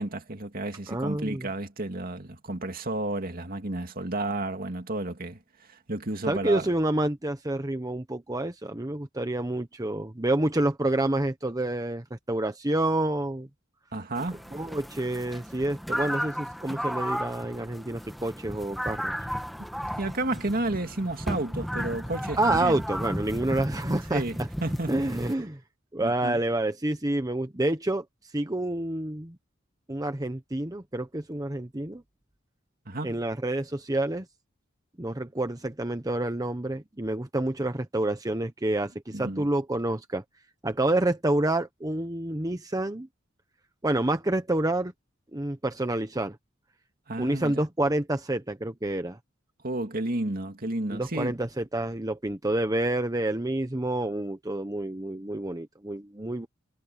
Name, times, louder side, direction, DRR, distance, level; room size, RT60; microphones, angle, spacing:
voice 1, 0.0-5.4 5.7-6.7 13.9-14.6 20.0-22.8 24.1-25.1 26.0-26.4 32.9-33.2 39.1-39.5 47.1-47.7 49.6-51.4, right 2 dB, 50° right, 2.3 m, -32 dB
voice 2, 0.9-1.5 6.3-13.5 14.5-19.1 22.4-24.2 24.9-25.6 25.9-28.0 28.3-29.4 29.9-32.0 33.0-34.2 35.0-40.2 40.6-43.1 43.8-44.9 45.3-46.4 47.2-49.2 50.9-56.5, right 1 dB, 20° right, 1.1 m, -28 dB
sound 1, 14.2-25.3, equal, ahead, 1.6 m, -34 dB
head